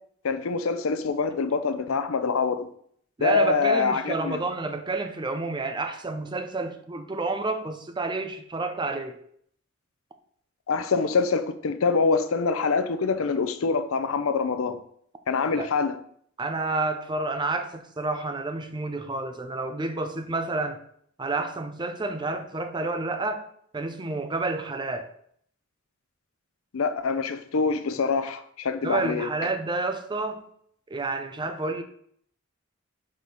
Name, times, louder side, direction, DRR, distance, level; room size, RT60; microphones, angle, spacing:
voice 1, 0.2-2.7 3.2-4.4 10.7-14.8 15.3-16.0 26.7-29.3, left 4 dB, 85° left, 0.6 m, -25 dB
voice 2, 3.2-9.2 15.5-15.7 16.4-20.8 21.2-23.5 23.7-25.1 28.8-30.4 30.9-31.8, right 3 dB, 20° right, 0.5 m, -29 dB
4.8 x 4.2 x 5.3 m
head